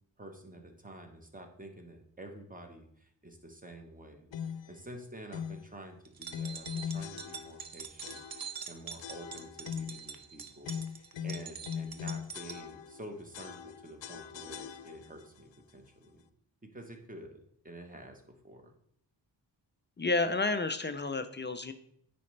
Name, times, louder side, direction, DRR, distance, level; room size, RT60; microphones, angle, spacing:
voice 1, 0.2-4.3 4.7-16.2 16.6-18.7, right 1 dB, 20° right, 4 dB, 1.0 m, -49 dB
sound 1, 4.3-4.7 5.3-5.7 6.3-7.7 8.0-8.6 9.0-10.1 10.6-13.0 13.3-15.2, left 8 dB, 75° left, 0.6 m, -40 dB
sound 2, 6.1-12.6, right 7 dB, 50° right, 0.7 m, -44 dB
voice 2, 20.0-21.7, left 3 dB, 25° left, 9 dB, 0.4 m, -30 dB
9.6 x 4.2 x 3.2 m, 0.67 s
wide cardioid pair, 120°, 45 cm